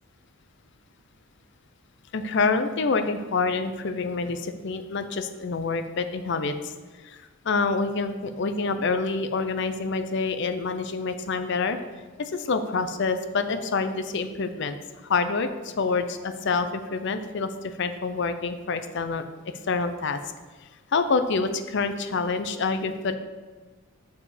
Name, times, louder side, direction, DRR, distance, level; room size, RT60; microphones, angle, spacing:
voice 1, 2.1-6.7 7.0-11.8 12.2-14.8 15.0-19.3 19.6-20.2 20.9-23.2, left 4 dB, 55° left, 9 dB, 0.5 m, -27 dB
6.8 x 4.9 x 4.9 m, 1.3 s
head